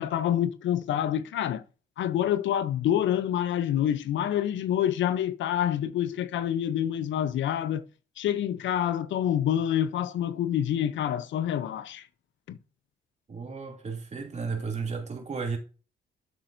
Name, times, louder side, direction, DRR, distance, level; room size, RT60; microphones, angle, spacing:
voice 1, 0.0-1.6 2.0-7.8 8.2-12.1 12.5-12.6, left 10 dB, 70° left, 0.6 m, -27 dB
voice 2, 13.3-15.6, right 5 dB, 35° right, 2.6 m, -33 dB
8.5 x 7.6 x 2.6 m
cardioid pair, 90°, 20 cm